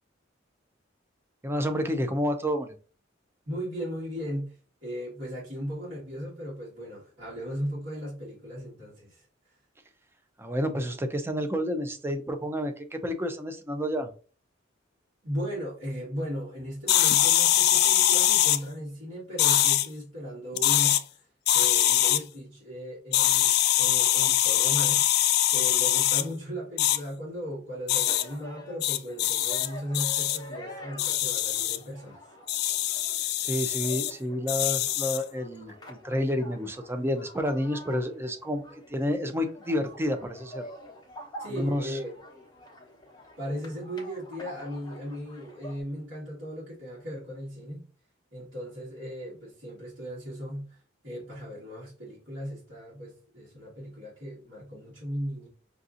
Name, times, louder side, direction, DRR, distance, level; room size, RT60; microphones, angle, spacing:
voice 1, 1.4-2.7 10.4-14.1 33.4-38.6 38.9-40.6 41.5-42.0, equal, 10° right, 6 dB, 0.4 m, -30 dB
voice 2, 3.5-9.3 15.2-21.2 21.5-25.0 25.5-32.2 41.4-42.1 43.4-47.8 48.3-50.8 51.0-55.5, equal, 70° right, -7 dB, 1.7 m, -37 dB
sound 1, 16.9-18.6 19.4-19.9 20.5-21.0 21.5-22.2 23.1-26.2 26.8-27.0 27.9-28.2 28.8-29.7 29.9-30.4 31.0-31.8 32.5-34.1 34.5-35.2, left 13 dB, 55° left, 0.3 m, -23 dB
sound 2, 27.9-45.8, equal, 20° left, 0.8 m, -47 dB
5.7 x 2.7 x 2.5 m, 0.38 s
head